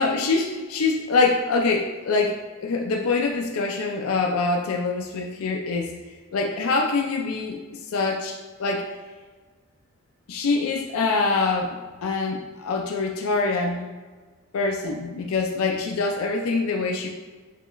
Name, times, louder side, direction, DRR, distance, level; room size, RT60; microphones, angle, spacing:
voice 1, 0.0-5.9 6.3-7.6 7.9-8.9 10.3-11.8 12.0-13.8 14.5-17.1, left 3 dB, 80° left, 2 dB, 0.4 m, -24 dB
6.7 x 3.0 x 2.3 m, 1.4 s
head